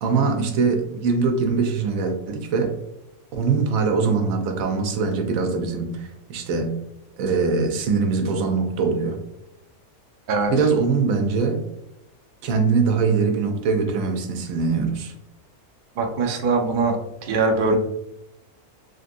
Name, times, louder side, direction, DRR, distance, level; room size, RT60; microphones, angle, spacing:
voice 1, 0.0-2.8 3.3-6.7 7.2-9.2 10.5-11.6 12.4-15.1, right 4 dB, 70° right, 5 dB, 0.9 m, -22 dB
voice 2, 16.0-17.0 17.2-17.8, right 3 dB, 90° right, 2 dB, 0.4 m, -21 dB
3.3 x 2.6 x 2.5 m, 0.86 s
omnidirectional pair, 1.6 m